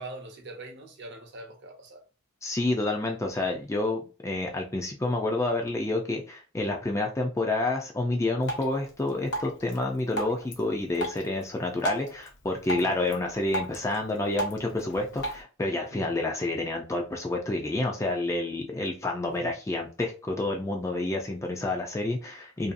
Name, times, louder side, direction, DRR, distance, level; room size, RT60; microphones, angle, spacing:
voice 1, 0.0-2.0 12.8-12.9 15.9-16.0 19.4-19.5, right 2 dB, 55° right, 0.6 m, -42 dB
voice 2, 2.4-22.7, left 2 dB, 15° left, 0.3 m, -29 dB
Drip, 8.4-15.4, right 1 dB, 55° left, 0.6 m, -37 dB
2.6 x 2.3 x 2.4 m
head